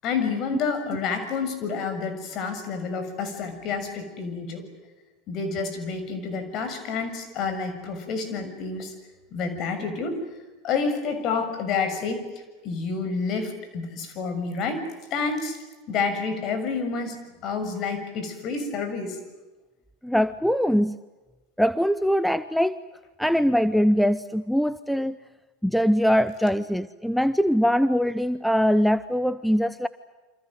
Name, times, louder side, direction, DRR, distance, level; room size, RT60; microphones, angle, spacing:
voice 1, 0.0-4.7 5.3-8.9 9.3-10.2 10.6-12.3 12.6-15.6 15.9-19.2, left 5 dB, 45° left, 8 dB, 6.7 m, -29 dB
voice 2, 20.0-21.0 21.6-22.8 23.2-25.2 25.6-29.9, equal, ahead, 14 dB, 0.9 m, -22 dB
28.5 x 26.5 x 7.9 m, 1.2 s
figure-of-eight pair, 80°, 0 cm